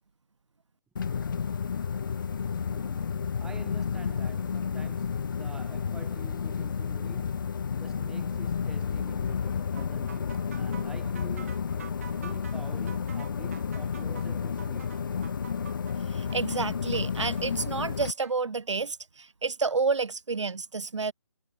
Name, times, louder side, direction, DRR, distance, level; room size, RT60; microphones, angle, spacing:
sound 1, 1.0-18.1, left 6 dB, 45° left, 0.7 m, -31 dB
voice 1, 2.5-11.7 12.2-15.0, right 5 dB, 5° right, 1.4 m, -49 dB
sound 2, 9.8-18.3, right 8 dB, 30° right, 1.0 m, -49 dB
voice 2, 16.1-21.1, right 4 dB, 75° right, 1.5 m, -30 dB
hypercardioid pair, 165°, 15 cm